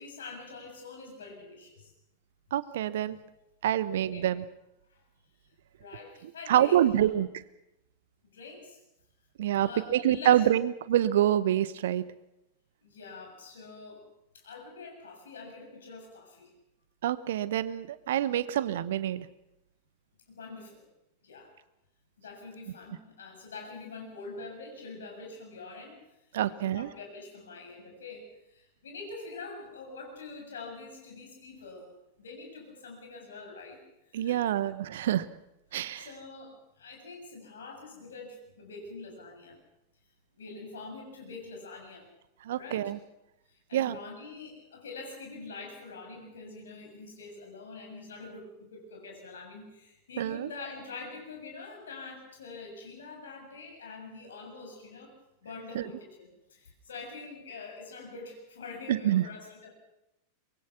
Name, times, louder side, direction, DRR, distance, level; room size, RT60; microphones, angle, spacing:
voice 1, 0.0-1.9 4.1-4.3 4.9-5.0 5.8-7.1 8.3-8.8 9.6-10.5 12.8-14.1 14.3-16.5 20.3-20.9 21.2-21.5 22.2-26.0 26.4-31.9 32.2-33.8 34.1-34.5 35.7-39.6 40.3-42.1 42.5-42.9 43.5-55.2 55.4-59.7, left 3 dB, 65° left, 2 dB, 7.3 m, -45 dB
voice 2, 2.5-3.2 3.6-4.4 6.5-7.3 9.4-12.0 17.0-19.3 26.3-26.9 34.1-35.3 35.7-36.1 42.4-43.0 43.7-44.0 50.2-50.5 55.7-55.8 58.9-59.2, right 11 dB, 60° right, 17 dB, 1.0 m, -26 dB
24.0 x 22.0 x 6.1 m, 0.88 s
figure-of-eight pair, 90°, 0 cm